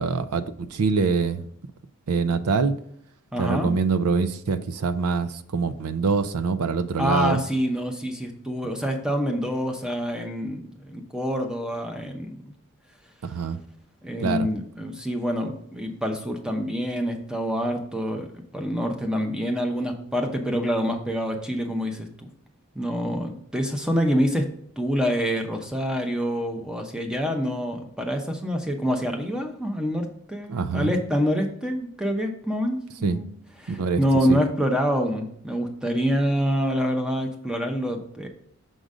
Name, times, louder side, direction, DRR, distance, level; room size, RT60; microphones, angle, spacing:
voice 1, 0.0-1.4 2.1-2.7 3.4-7.4 13.2-13.6 14.2-14.5 30.5-30.9 33.0-33.2 33.7-34.0 34.3-34.4, right 4 dB, 90° right, 0.5 m, -24 dB
voice 2, 3.3-3.7 7.0-12.5 14.0-18.3 18.5-22.3 22.7-24.5 24.8-33.3 33.6-38.3, equal, 5° right, 0.7 m, -26 dB
6.3 x 3.9 x 4.9 m
head